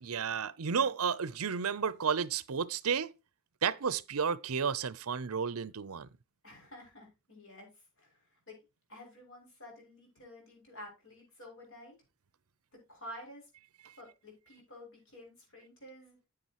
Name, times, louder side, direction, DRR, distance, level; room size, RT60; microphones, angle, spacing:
voice 1, 0.0-3.1 3.6-6.1, right 6 dB, 70° right, 0.6 m, -32 dB
voice 2, 6.4-8.6 8.9-11.9 12.7-13.5 14.0-16.2, left 1 dB, 60° left, 6.6 m, -51 dB
9.8 x 8.9 x 3.0 m
head